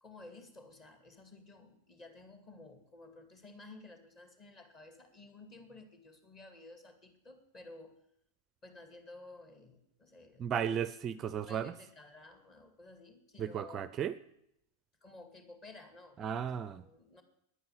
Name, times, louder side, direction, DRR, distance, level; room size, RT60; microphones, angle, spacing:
voice 1, 0.0-8.0 8.6-10.5 11.5-13.9 15.0-16.2 16.7-17.2, left 2 dB, 30° left, 7 dB, 2.3 m, -54 dB
voice 2, 10.4-11.7 13.4-14.1 16.2-16.8, right 8 dB, 30° right, 15 dB, 0.5 m, -35 dB
10.0 x 9.5 x 8.8 m, 0.77 s
figure-of-eight pair, 90°, 0 cm